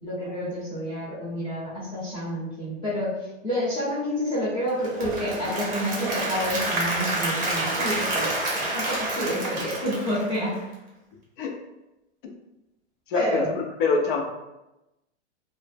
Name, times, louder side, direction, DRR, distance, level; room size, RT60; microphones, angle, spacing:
voice 1, 0.0-3.1 3.4-10.5 13.1-13.5, equal, 15° left, -9 dB, 0.7 m, -29 dB
Applause / Crowd, 4.7-10.7, right 2 dB, 25° right, 0.7 m, -29 dB
voice 2, 13.1-14.2, left 4 dB, 50° left, 2 dB, 0.5 m, -25 dB
2.0 x 2.0 x 3.2 m, 0.97 s
hypercardioid pair, 125°, 35 cm